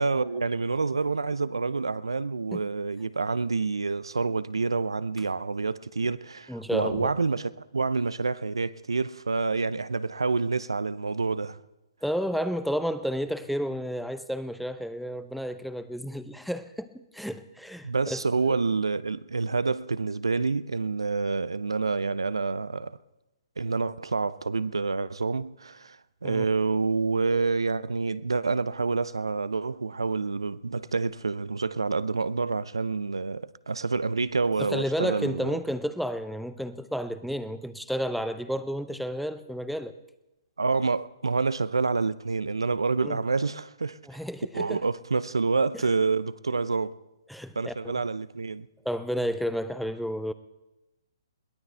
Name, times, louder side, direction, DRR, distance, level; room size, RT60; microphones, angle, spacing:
voice 1, 0.0-11.6 17.8-23.0 23.6-35.6 40.6-44.0 44.5-47.0 47.6-48.7, right 4 dB, 80° right, 0.6 m, -28 dB
voice 2, 6.5-7.1 12.0-18.6 26.2-26.5 34.6-39.9 43.0-43.2 44.1-44.8 47.3-48.0 48.8-50.3, equal, ahead, 0.7 m, -31 dB
22.0 x 17.5 x 3.4 m
figure-of-eight pair, 125°, 3 cm